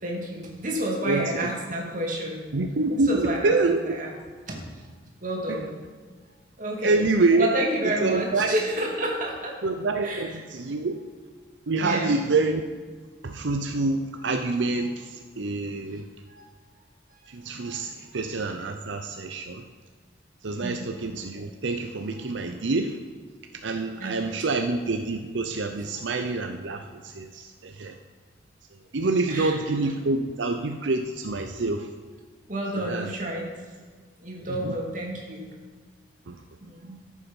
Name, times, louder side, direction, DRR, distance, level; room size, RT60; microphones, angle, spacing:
voice 1, 0.0-2.4 3.1-4.1 4.5-4.6 5.2-5.7 6.6-7.0 7.4-9.6 10.0-10.3 11.8-12.2 16.3-16.5 17.6-17.9 20.6-20.9 24.0-24.4 29.3-29.6 32.5-33.5 34.2-35.5 36.6-37.0, right 1 dB, 45° right, -1 dB, 2.4 m, -30 dB
voice 2, 1.1-1.5 2.5-3.8 5.5-5.6 6.8-7.5 7.8-8.5 9.6-11.0 11.7-12.6 13.2-16.0 17.3-19.6 20.4-23.0 23.5-27.9 28.9-31.9 32.8-33.1 34.6-34.8 36.3-36.4, right 3 dB, 90° right, 5 dB, 0.7 m, -26 dB
13.5 x 7.3 x 5.4 m, 1.5 s
head